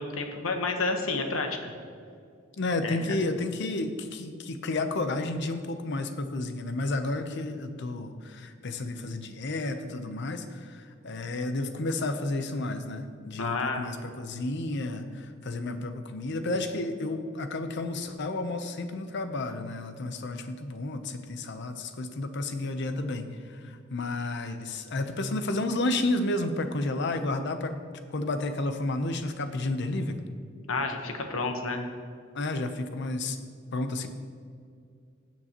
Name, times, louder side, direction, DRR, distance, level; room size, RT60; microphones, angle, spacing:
voice 1, 0.0-1.7 2.8-3.2 13.4-13.8 30.7-31.8, left 3 dB, 80° left, 4 dB, 1.1 m, -30 dB
voice 2, 2.6-27.7 28.1-30.2 32.3-33.4 33.7-34.1, left 2 dB, 60° left, 8 dB, 0.7 m, -31 dB
16.0 x 7.5 x 3.0 m, 2.3 s
head